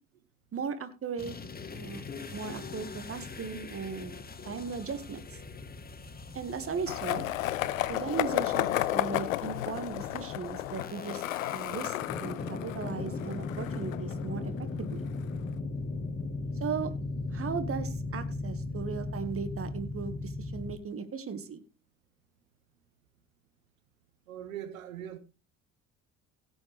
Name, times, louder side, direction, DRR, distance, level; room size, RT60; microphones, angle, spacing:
voice 1, 0.5-1.3 1.7-2.0 2.3-4.2 4.5-5.2 6.3-7.2 7.9-11.2 11.5-14.5 14.8-15.0 16.6-16.9 17.3-21.6, right 6 dB, 35° right, 1.9 m, -37 dB
sound 1, 1.2-20.8, left 3 dB, 25° left, 1.7 m, -38 dB
Skateboard, 6.9-14.8, left 14 dB, 80° left, 0.7 m, -33 dB
voice 2, 24.3-25.2, right 10 dB, 85° right, 1.5 m, -41 dB
16.5 x 8.1 x 3.4 m
hypercardioid pair, 60°, 39 cm